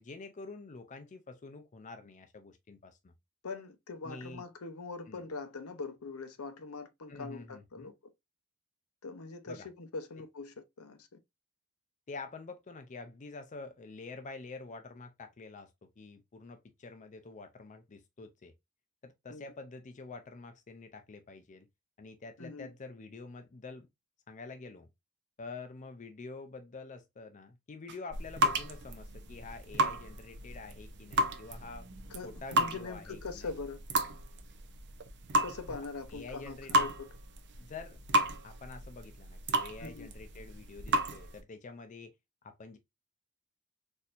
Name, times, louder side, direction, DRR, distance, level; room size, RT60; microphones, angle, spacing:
voice 1, 0.0-3.1 4.0-4.4 5.1-5.3 7.1-7.9 9.5-9.7 10.2-10.3 12.1-18.5 19.0-21.7 22.0-23.9 24.3-24.9 25.4-31.9 32.2-33.5 35.7-35.8 36.1-36.9 37.6-38.0 38.4-42.1 42.4-42.8, left 3 dB, 35° left, 0.5 m, -47 dB
voice 2, 3.4-7.9 9.0-11.1 19.3-19.5 22.4-22.7 32.1-33.8 35.4-37.1 39.8-40.1, left 4 dB, 75° left, 0.7 m, -42 dB
sound 1, 27.9-41.4, right 1 dB, 55° right, 0.6 m, -33 dB
4.2 x 2.7 x 2.5 m
head